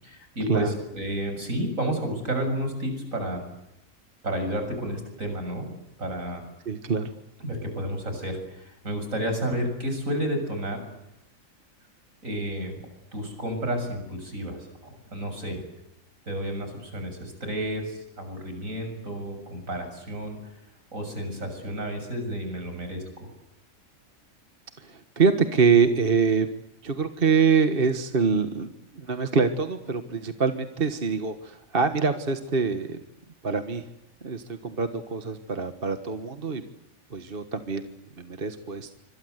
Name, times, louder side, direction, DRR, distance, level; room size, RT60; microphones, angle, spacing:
voice 1, 0.0-3.4 4.2-5.7 6.0-6.4 7.4-10.8 12.2-12.9 13.1-15.6 16.3-20.4 20.9-23.0, right 1 dB, 70° right, 6 dB, 7.5 m, -31 dB
voice 2, 6.6-7.1 24.8-26.5 26.8-28.7 28.9-33.0 33.4-33.9 34.2-36.6 37.1-37.9 38.2-38.9, right 5 dB, 40° right, 8 dB, 1.6 m, -24 dB
26.5 x 25.5 x 8.1 m, 0.86 s
omnidirectional pair, 1.5 m